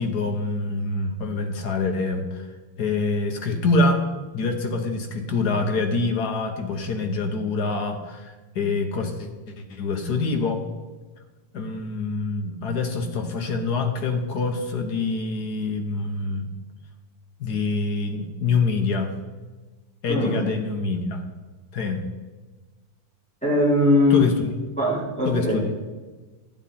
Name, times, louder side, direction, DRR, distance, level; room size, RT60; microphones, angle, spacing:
voice 1, 0.0-2.5 2.8-4.0 4.3-10.7 11.5-16.4 17.4-19.1 20.0-21.2 21.7-22.0 24.1-24.5 25.2-25.7, left 3 dB, 55° left, 5 dB, 1.3 m, -25 dB
voice 2, 20.1-20.4 23.4-24.3 24.8-25.6, left 2 dB, 5° left, -8 dB, 4.2 m, -20 dB
12.5 x 9.7 x 4.2 m, 1.3 s
omnidirectional pair, 2.4 m